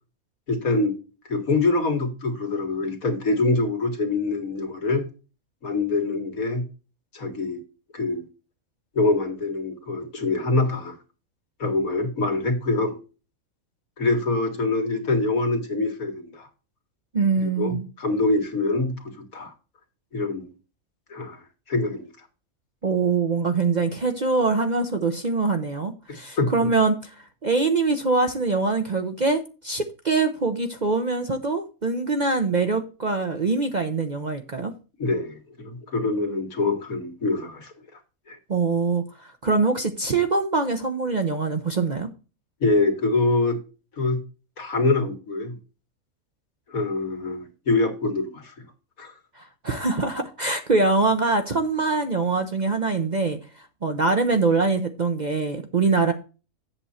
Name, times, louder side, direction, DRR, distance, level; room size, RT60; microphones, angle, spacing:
voice 1, 0.5-1.0 1.3-5.1 5.6-6.6 7.1-7.6 7.9-8.3 8.9-11.0 11.6-13.0 14.0-16.5 17.4-19.5 20.1-20.5 21.1-22.1 26.1-26.7 35.0-38.0 38.3-38.4 42.6-43.6 44.0-44.2 44.6-45.6 46.7-48.5 49.0-49.1 55.8-55.9, left 3 dB, 75° left, 2.2 m, -25 dB
voice 2, 17.1-17.9 22.8-34.7 38.5-42.1 49.4-56.1, right 3 dB, 40° right, 0.7 m, -24 dB
8.0 x 7.6 x 4.2 m
omnidirectional pair, 1.5 m